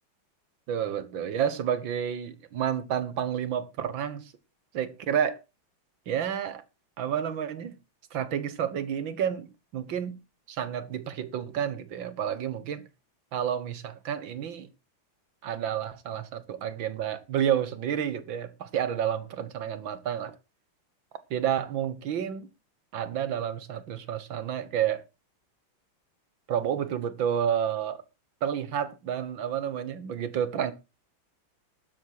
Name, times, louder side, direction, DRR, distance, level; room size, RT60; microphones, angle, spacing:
voice 1, 0.7-4.3 4.7-5.4 6.1-6.6 7.0-7.7 8.1-10.2 10.5-12.9 13.3-14.7 15.4-20.4 21.3-22.5 22.9-25.0 26.5-28.0 28.4-30.7, right 9 dB, 70° right, 1.9 m, -30 dB
12.5 x 9.8 x 4.7 m
omnidirectional pair, 2.2 m